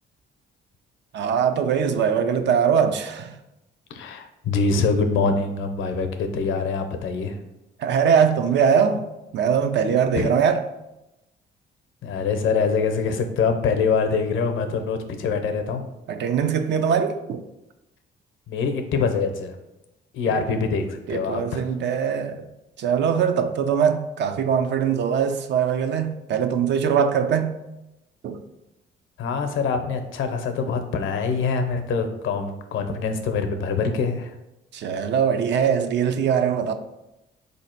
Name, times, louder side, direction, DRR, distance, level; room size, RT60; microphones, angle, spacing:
voice 1, 1.1-3.3 7.8-9.1 9.3-10.6 16.1-17.4 20.3-20.4 21.1-22.4 22.8-27.6 28.2-28.4 34.7-36.7, right 7 dB, 65° right, 0.5 m, -22 dB
voice 2, 3.9-7.4 10.1-10.3 12.0-15.9 18.5-19.6 20.1-21.6 29.2-34.3, left 5 dB, 80° left, 0.6 m, -24 dB
4.1 x 2.8 x 4.3 m
cardioid pair, 90°, 20 cm